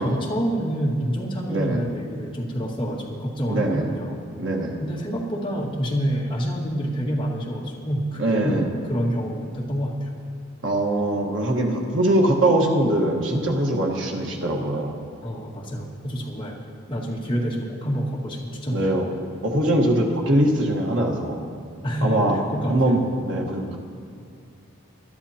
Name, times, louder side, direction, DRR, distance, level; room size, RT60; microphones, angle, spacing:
voice 1, 0.0-4.2 4.8-10.1 15.2-16.5 16.9-18.9 21.8-23.0, equal, 25° left, -5 dB, 1.9 m, -27 dB
voice 2, 1.5-1.8 3.5-3.9 4.4-4.7 8.2-8.7 10.6-14.9 18.7-19.1 19.4-21.4 22.0-22.4 22.7-23.8, right 1 dB, 65° right, 0 dB, 1.4 m, -22 dB
20.5 x 12.5 x 2.9 m, 2.4 s
head